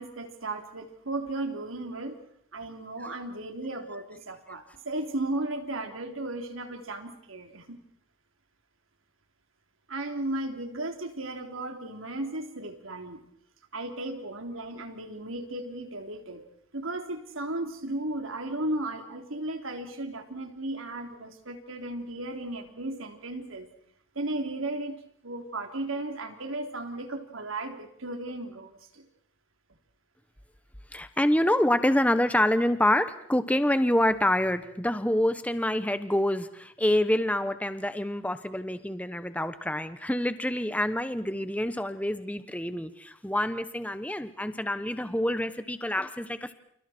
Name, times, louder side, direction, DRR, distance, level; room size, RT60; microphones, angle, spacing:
voice 1, 0.0-2.2 2.5-7.8 9.9-13.2 13.7-16.4 16.7-23.7 24.2-29.0, right 2 dB, 90° right, 5 dB, 3.6 m, -35 dB
voice 2, 30.9-46.5, left 1 dB, 5° left, 11 dB, 1.2 m, -27 dB
29.5 x 29.0 x 4.5 m, 0.70 s
head